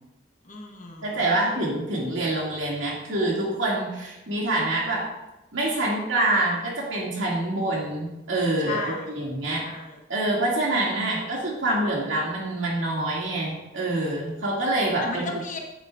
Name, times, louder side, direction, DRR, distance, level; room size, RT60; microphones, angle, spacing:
voice 1, 0.4-1.4 8.6-9.2 9.5-10.0 15.0-15.6, left 3 dB, 40° left, 0 dB, 1.1 m, -35 dB
voice 2, 1.0-5.0 5.5-9.7 10.1-15.3, right 2 dB, 85° right, -4 dB, 2.5 m, -26 dB
8.3 x 8.1 x 2.6 m, 0.98 s
head